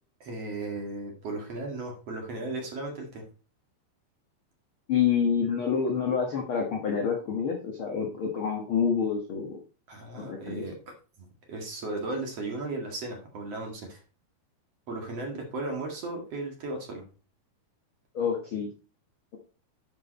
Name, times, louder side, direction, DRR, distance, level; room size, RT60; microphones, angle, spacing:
voice 1, 0.2-3.2 9.9-10.8 11.2-14.0 14.9-17.0, right 2 dB, 50° right, 1 dB, 2.4 m, -36 dB
voice 2, 4.9-9.6 10.2-10.6 18.1-18.7, left 7 dB, 70° left, 1 dB, 1.2 m, -27 dB
10.5 x 6.1 x 4.2 m, 0.35 s
omnidirectional pair, 4.5 m